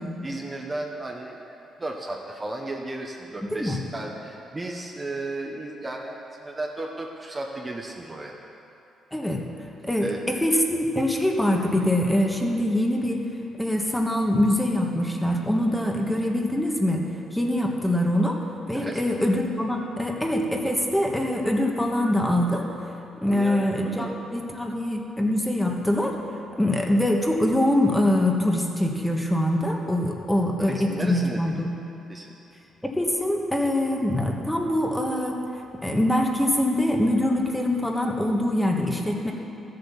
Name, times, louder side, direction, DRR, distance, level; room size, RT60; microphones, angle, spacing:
voice 1, 0.2-8.3 10.0-10.2 18.7-19.1 23.3-24.2 30.7-31.4 32.1-32.3, right 2 dB, 25° right, 0 dB, 1.2 m, -34 dB
voice 2, 3.4-3.8 9.1-9.4 9.8-13.2 13.6-18.4 18.7-22.6 23.1-26.2 26.6-31.7 32.8-35.4 35.8-39.3, left 1 dB, 5° left, 0 dB, 1.5 m, -24 dB
13.5 x 7.9 x 7.1 m, 2.8 s
cardioid pair, 90°, 0 cm